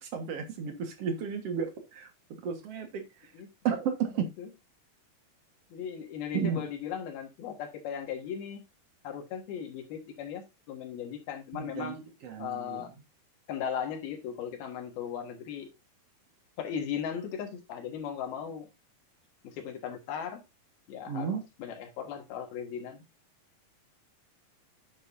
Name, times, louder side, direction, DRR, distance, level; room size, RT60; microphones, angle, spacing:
voice 1, 0.0-2.1 2.4-3.0 3.6-4.3 6.3-6.6 11.6-12.0 12.2-12.8 21.1-21.4, right 7 dB, 55° right, 2.0 m, -32 dB
voice 2, 5.7-8.6 9.0-12.0 12.4-12.9 13.5-15.7 16.6-18.7 19.4-20.4 20.9-23.0, left 8 dB, 85° left, 3.4 m, -37 dB
9.0 x 8.0 x 2.6 m
omnidirectional pair, 4.3 m